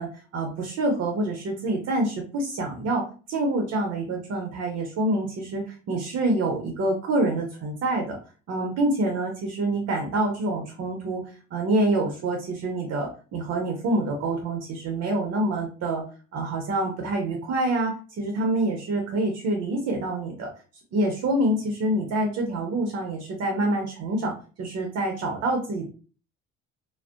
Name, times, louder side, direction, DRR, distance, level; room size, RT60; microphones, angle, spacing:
voice 1, 0.0-8.2 8.5-11.2 11.5-16.0 16.3-20.5 20.9-25.9, right 2 dB, 55° right, 2 dB, 0.7 m, -26 dB
2.5 x 2.1 x 2.4 m, 0.37 s
supercardioid pair, 85°, 30 cm